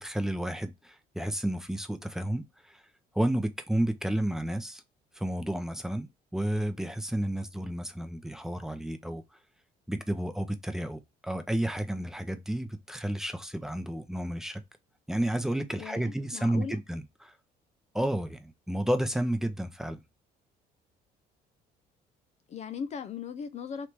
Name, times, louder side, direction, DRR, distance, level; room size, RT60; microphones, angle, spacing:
voice 1, 0.0-2.4 3.1-4.8 5.2-6.1 6.3-9.2 9.9-14.6 15.1-17.3 17.9-20.0, right 1 dB, 5° right, 0.6 m, -31 dB
voice 2, 15.8-16.8 22.5-23.9, left 6 dB, 40° left, 0.4 m, -38 dB
3.3 x 2.8 x 4.6 m
cardioid pair, 110°, 17 cm